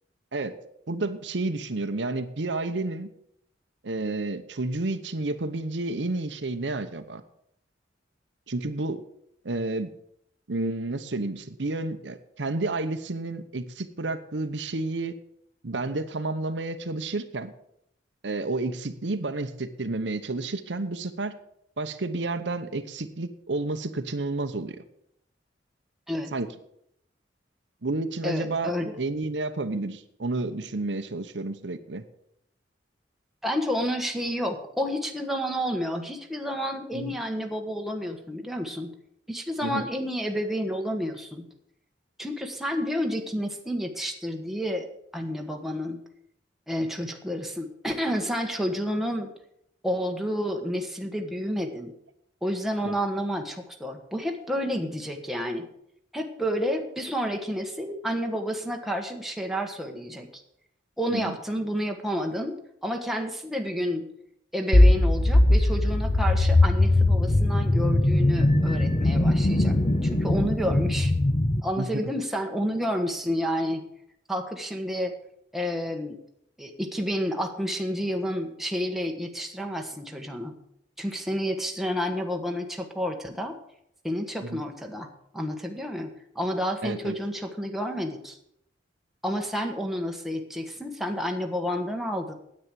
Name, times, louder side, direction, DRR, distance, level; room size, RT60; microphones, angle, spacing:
voice 1, 0.9-3.1 3.8-7.2 8.5-9.0 9.4-9.9 10.5-15.1 15.6-17.5 18.2-21.3 21.8-24.8 26.3-26.5 27.8-28.7 29.0-32.0 36.9-37.1 39.6-39.8 52.8-52.9 61.1-61.3 71.8-72.0 84.4-84.6 86.8-87.2, right 2 dB, 80° right, 9 dB, 0.9 m, -30 dB
voice 2, 28.2-29.0 33.4-38.9 39.3-41.5 42.2-44.9 45.1-46.0 46.7-49.3 49.8-51.9 52.4-55.7 56.1-60.4 61.0-64.1 64.5-71.1 71.6-73.8 74.3-75.1 75.5-76.2 76.6-80.6 81.0-83.6 84.0-88.4 89.2-92.3, equal, ahead, 2 dB, 1.3 m, -30 dB
sound 1, 64.7-71.6, left 1 dB, 35° left, 0.8 m, -20 dB
9.7 x 8.8 x 7.5 m, 0.74 s
head